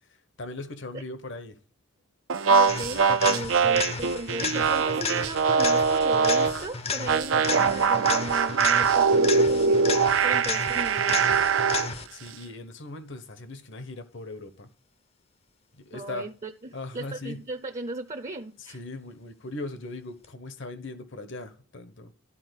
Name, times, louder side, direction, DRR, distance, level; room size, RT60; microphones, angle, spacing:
voice 1, 0.0-1.6 3.6-3.8 12.1-14.7 15.7-16.3 16.7-17.4 18.6-22.1, left 2 dB, 65° left, 1.1 m, -39 dB
sound 1, 2.3-6.6 7.1-11.9, right 5 dB, 75° right, 0.6 m, -22 dB
voice 2, 2.5-11.4 15.9-16.5 16.9-18.8, right 2 dB, 35° right, 0.7 m, -37 dB
sound 2, 2.7-12.3 20.2-20.3, left 5 dB, 30° left, 0.6 m, -33 dB
12.5 x 4.3 x 8.1 m
head